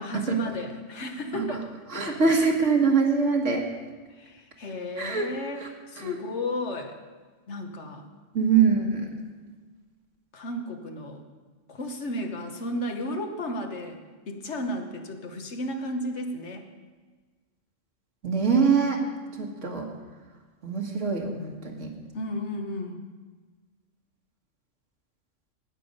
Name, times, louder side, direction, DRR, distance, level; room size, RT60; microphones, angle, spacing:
voice 1, 0.0-1.6 4.1-6.9 7.5-8.1 10.3-11.2 11.7-14.0 14.3-16.7 22.1-23.0, left 1 dB, 65° left, 4 dB, 1.5 m, -33 dB
voice 2, 1.9-3.7 5.0-5.3 5.6-5.7 6.0-6.2 8.3-9.1 18.2-19.0 19.4-19.9 20.6-21.9, right 5 dB, 75° right, 1 dB, 2.0 m, -23 dB
18.0 x 7.0 x 5.4 m, 1.4 s
omnidirectional pair, 1.3 m